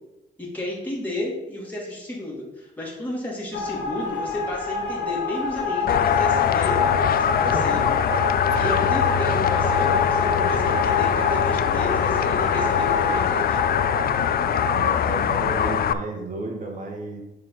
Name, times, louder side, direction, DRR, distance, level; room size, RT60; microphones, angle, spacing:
voice 1, 0.4-7.9 8.6-13.6, left 1 dB, 10° left, -5 dB, 2.7 m, -32 dB
sound 1, 3.5-14.7, left 5 dB, 65° left, 1.2 m, -26 dB
sound 2, 5.9-15.9, left 8 dB, 50° left, 0.4 m, -23 dB
voice 2, 14.7-17.2, right 2 dB, 40° right, 1 dB, 1.9 m, -32 dB
6.4 x 4.4 x 5.8 m, 0.94 s
cardioid pair, 90°, 20 cm